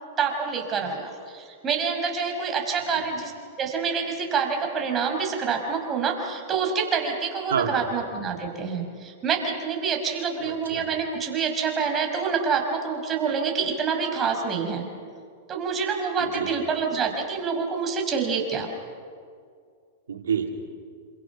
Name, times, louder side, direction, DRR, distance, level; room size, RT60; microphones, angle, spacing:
voice 1, 0.2-3.3 3.6-14.8 15.5-18.7, right 5 dB, 25° right, 2 dB, 5.4 m, -27 dB
voice 2, 7.5-7.8 10.4-10.8 16.2-16.5 20.1-20.5, right 7 dB, 90° right, 3 dB, 3.1 m, -28 dB
28.5 x 27.0 x 5.9 m, 2.2 s
hypercardioid pair, 120°, 0 cm